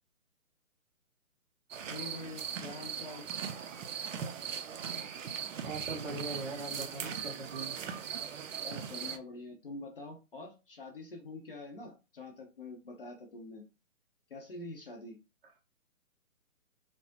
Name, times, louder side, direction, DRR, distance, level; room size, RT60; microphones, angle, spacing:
sound 1, 1.7-9.2, right 7 dB, 60° right, 0.5 m, -39 dB
voice 1, 1.9-3.2 8.6-13.6 14.3-15.2, left 2 dB, 40° left, 0.7 m, -45 dB
voice 2, 5.6-7.8, right 2 dB, 35° right, 1.1 m, -40 dB
4.2 x 2.0 x 2.8 m
hypercardioid pair, 160°, 44 cm